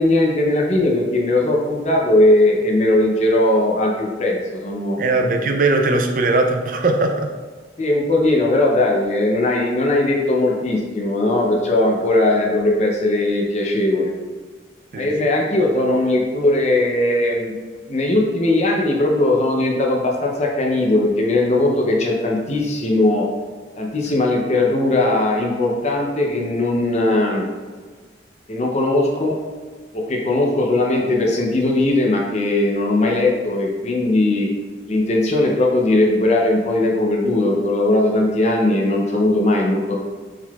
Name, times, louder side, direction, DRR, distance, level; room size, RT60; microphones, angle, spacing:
voice 1, 0.0-5.0 7.8-14.1 15.0-17.5 17.9-23.3 23.8-27.5 28.5-29.4 29.9-34.5 34.9-40.0, left 2 dB, 40° left, 0 dB, 0.5 m, -19 dB
voice 2, 5.0-7.3 14.9-15.1, right 2 dB, 45° right, 4 dB, 0.4 m, -19 dB
4.5 x 3.9 x 2.3 m, 1.5 s
head